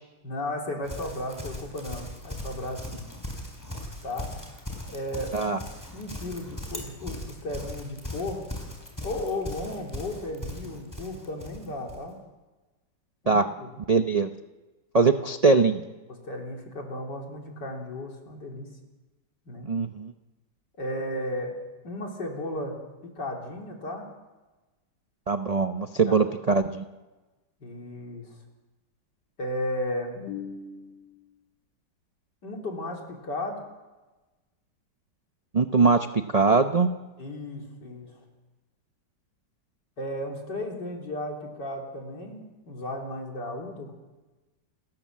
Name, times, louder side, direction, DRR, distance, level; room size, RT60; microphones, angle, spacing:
voice 1, 0.2-3.1 4.0-4.3 4.9-5.6 5.9-8.4 9.0-12.2 13.2-13.7 15.0-15.1 16.2-18.7 19.5-19.7 20.8-21.5 21.8-24.1 26.1-26.2 27.6-28.3 29.4-31.0 32.4-33.6 37.2-38.2 40.0-43.9, left 1 dB, 65° left, 1 dB, 4.0 m, -35 dB
Livestock farm animals working animals, 0.8-12.0, left 1 dB, 10° left, 3.7 m, -39 dB
voice 2, 13.9-14.3 14.9-15.8 19.6-20.1 25.3-26.8 35.5-36.1 36.3-36.9, right 4 dB, 75° right, 7 dB, 0.3 m, -21 dB
28.5 x 13.5 x 7.5 m, 1.2 s
omnidirectional pair, 2.0 m